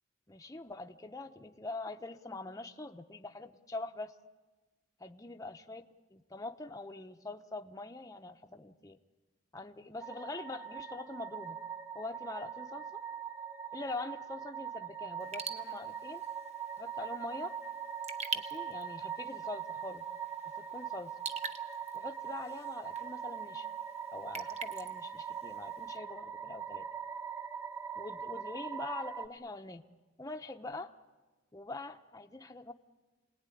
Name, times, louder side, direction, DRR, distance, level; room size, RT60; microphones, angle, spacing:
voice 1, 0.3-4.1 5.0-5.8 6.1-9.0 9.5-11.6 11.9-13.0 13.7-16.2 16.8-17.6 18.3-20.0 20.7-21.1 21.9-23.7 24.1-26.9 28.0-29.8 30.2-30.9 31.5-32.7, left 2 dB, 20° left, 5 dB, 0.8 m, -43 dB
sound 1, 10.0-29.3, right 8 dB, 10° right, 0.8 m, -42 dB
Raindrop / Drip, 15.2-26.0, right 4 dB, 35° right, 1.1 m, -46 dB
27.5 x 19.0 x 9.9 m, 1.3 s
head